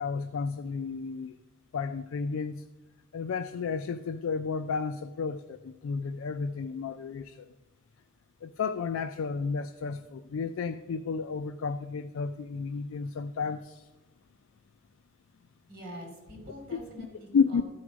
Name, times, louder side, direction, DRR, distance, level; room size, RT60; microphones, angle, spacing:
voice 1, 0.0-1.4 1.7-2.6 3.1-7.4 8.4-13.8 16.7-16.8 17.3-17.6, left 5 dB, 85° left, 9 dB, 0.4 m, -32 dB
voice 2, 15.7-17.6, equal, 50° right, 1 dB, 2.7 m, -45 dB
13.0 x 4.8 x 6.1 m, 1.1 s
head